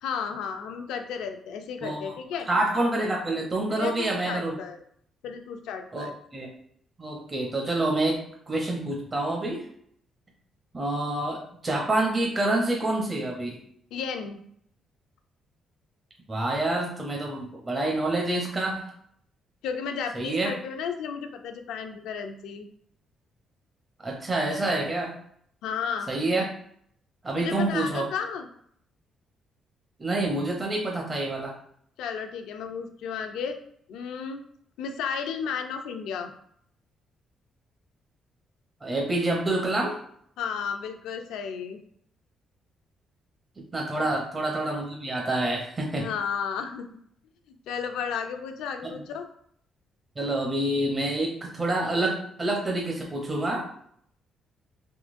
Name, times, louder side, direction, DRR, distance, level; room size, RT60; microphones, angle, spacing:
voice 1, 0.0-2.5 3.7-4.8 5.2-6.1 13.9-14.4 19.6-22.7 25.6-26.1 27.4-28.5 32.0-33.6 33.9-34.4 34.8-36.3 40.4-41.8 46.0-47.0 47.5-49.3, left 6 dB, 85° left, 6 dB, 0.4 m, -33 dB
voice 2, 1.8-2.1 2.5-4.6 5.9-6.5 7.0-9.7 10.7-13.6 16.3-18.9 20.1-20.5 24.0-25.1 26.1-26.4 27.2-28.1 30.0-31.5 38.8-40.0 43.7-46.1 48.9-49.0 50.2-53.7, right 2 dB, 30° right, -1 dB, 0.7 m, -27 dB
3.7 x 2.9 x 2.5 m, 0.67 s
cardioid pair, 90°, 0 cm